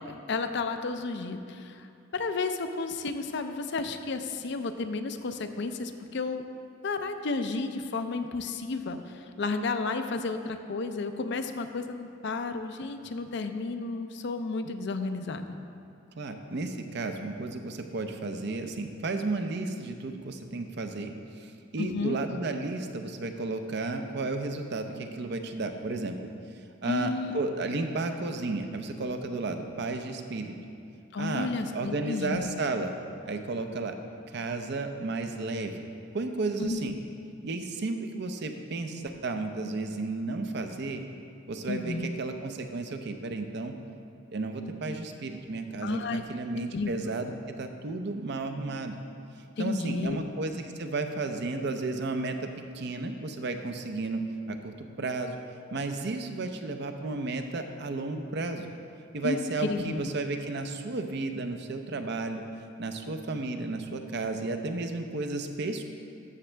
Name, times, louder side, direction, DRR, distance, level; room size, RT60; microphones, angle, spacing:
voice 1, 0.0-6.4 6.8-15.4 21.8-22.2 26.8-27.4 31.1-32.5 36.6-36.9 41.7-42.1 45.8-46.2 46.7-46.9 49.6-50.2 59.2-60.0, left 3 dB, 60° left, 7 dB, 0.5 m, -32 dB
voice 2, 16.2-26.2 26.8-30.5 31.2-32.9 33.3-33.9 34.3-35.8 36.1-36.9 37.4-41.0 41.5-43.8 44.3-49.0 49.6-54.2 54.5-55.4 55.7-58.7 59.1-62.4 62.8-65.8, right 3 dB, 60° right, 6 dB, 0.6 m, -33 dB
13.0 x 6.3 x 3.4 m, 2.6 s
head